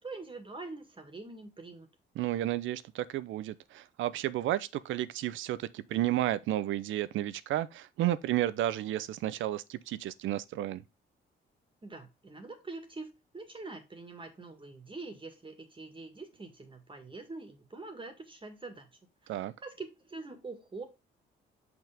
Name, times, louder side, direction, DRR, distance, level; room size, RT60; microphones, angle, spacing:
voice 1, 0.0-1.9 11.8-18.9 19.2-20.8, right 3 dB, 25° right, 1.9 m, -44 dB
voice 2, 2.2-10.8 19.3-19.5, right 13 dB, 80° right, 0.6 m, -32 dB
5.9 x 5.6 x 3.5 m
cardioid pair, 90°, 20 cm